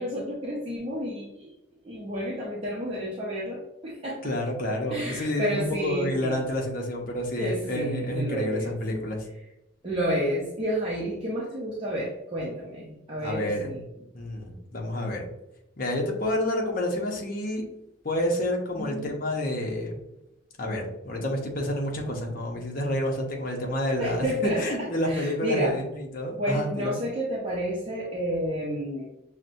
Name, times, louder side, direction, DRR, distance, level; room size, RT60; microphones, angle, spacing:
voice 1, 0.0-1.5 1.8-4.3 4.9-6.4 7.4-9.1 9.8-13.8 18.8-19.1 24.0-25.8 26.4-29.1, equal, 30° right, -5 dB, 0.6 m, -30 dB
voice 2, 4.2-9.2 13.2-13.8 14.1-15.3 15.8-17.6 18.0-20.0 20.6-27.0, left 1 dB, 45° left, 0 dB, 0.7 m, -29 dB
5.8 x 2.1 x 2.5 m, 0.88 s
head